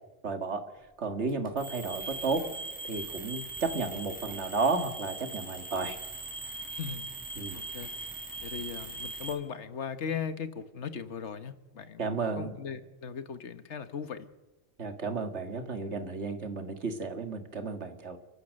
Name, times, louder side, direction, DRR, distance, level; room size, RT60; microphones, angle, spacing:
voice 1, 0.2-0.6 1.0-2.4 2.8-6.0 7.4-7.6 12.0-12.5 14.8-18.2, right 4 dB, 80° right, 7 dB, 2.2 m, -32 dB
sound 1, 1.3-9.3, right 3 dB, 5° left, 3.6 m, -40 dB
voice 2, 6.7-7.1 7.5-7.9 8.4-14.3, left 6 dB, 80° left, 11 dB, 1.5 m, -38 dB
29.5 x 14.5 x 6.5 m, 1.1 s
omnidirectional pair, 1.2 m